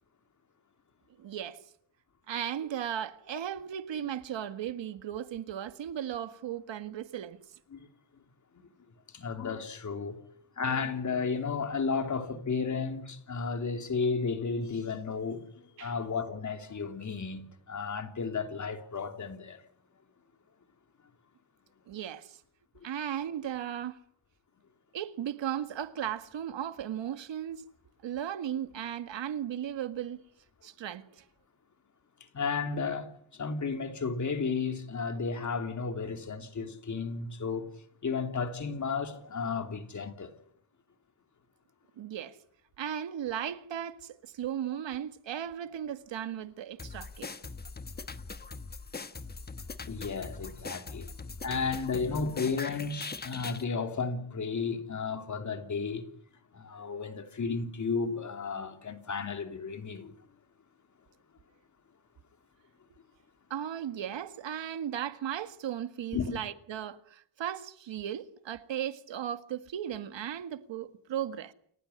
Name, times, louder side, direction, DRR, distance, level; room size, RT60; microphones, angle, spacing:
voice 1, 1.2-1.6 2.3-7.4 15.8-15.9 21.9-22.4 22.8-24.0 24.9-27.6 28.0-30.2 30.6-31.2 42.0-42.4 42.8-47.3 63.5-71.5, right 10 dB, 70° right, 1.9 m, -36 dB
voice 2, 9.1-10.2 10.6-19.6 22.8-22.9 32.3-37.7 38.0-40.3 49.9-51.1 51.4-56.1 56.5-60.1 66.1-66.4, left 5 dB, 40° left, 3.1 m, -33 dB
sound 1, 46.8-53.6, left 4 dB, 20° left, 1.2 m, -41 dB
29.5 x 15.5 x 9.9 m
wide cardioid pair, 155°, 46 cm